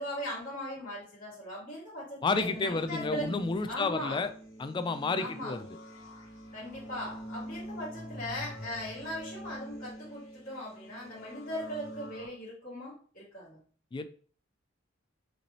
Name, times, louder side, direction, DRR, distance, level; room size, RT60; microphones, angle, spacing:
voice 1, 0.0-3.3 3.7-4.2 5.2-5.5 6.5-13.6, equal, 45° left, -10 dB, 2.1 m, -39 dB
voice 2, 2.2-4.3 4.6-5.7 13.9-14.0, left 3 dB, 25° left, 9 dB, 0.3 m, -31 dB
sound 1, 2.3-12.3, equal, 85° left, 2.0 m, -45 dB
5.0 x 2.8 x 3.2 m, 0.44 s
head